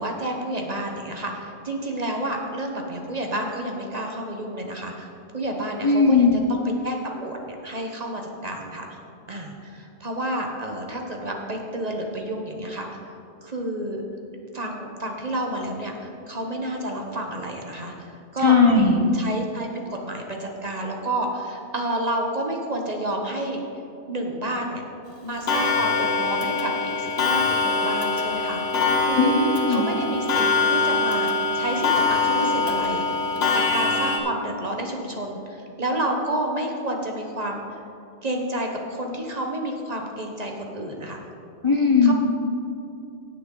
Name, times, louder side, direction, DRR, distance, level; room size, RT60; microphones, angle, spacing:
voice 1, 0.0-9.0 9.3-13.0 13.4-14.0 14.5-18.6 19.1-23.6 24.1-24.8 25.2-28.6 29.0-29.3 29.7-33.0 33.5-37.8 38.2-41.2 42.0-42.1, right 1 dB, 40° right, 1 dB, 1.0 m, -30 dB
voice 2, 5.8-6.4 18.4-19.0 29.1-29.8 41.6-42.1, left 4 dB, 30° left, -1 dB, 0.7 m, -17 dB
Clock, 25.5-34.2, left 4 dB, 65° left, 1.3 m, -23 dB
16.5 x 6.3 x 3.8 m, 2.6 s
omnidirectional pair, 1.1 m